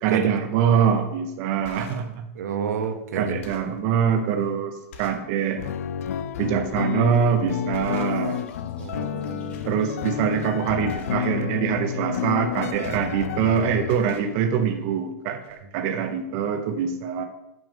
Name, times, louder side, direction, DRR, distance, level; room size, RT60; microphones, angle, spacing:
voice 1, 0.0-2.2 3.1-5.6 6.4-8.4 9.6-17.2, right 7 dB, 30° right, 6 dB, 0.6 m, -24 dB
sound 1, 0.7-0.9 1.5-2.1 2.8-2.9 3.3-3.8 4.4-4.5 4.9-5.3 5.7-5.9 7.0-7.3 7.7-8.4 8.7-9.2 9.5-9.8 10.1-10.4 10.9-11.3 12.4-13.5 13.8-14.3 15.1-15.2 15.4-15.6, left 4 dB, 50° left, 1.2 m, -47 dB
voice 2, 2.3-3.4 8.8-9.7, right 6 dB, 85° right, 8 dB, 1.1 m, -30 dB
sound 2, 5.6-14.0, left 9 dB, 70° left, 0.4 m, -30 dB
sound 3, 7.3-10.2, left 3 dB, 15° left, 1.2 m, -48 dB
7.1 x 6.0 x 5.1 m, 0.91 s
supercardioid pair, 175°, 8 cm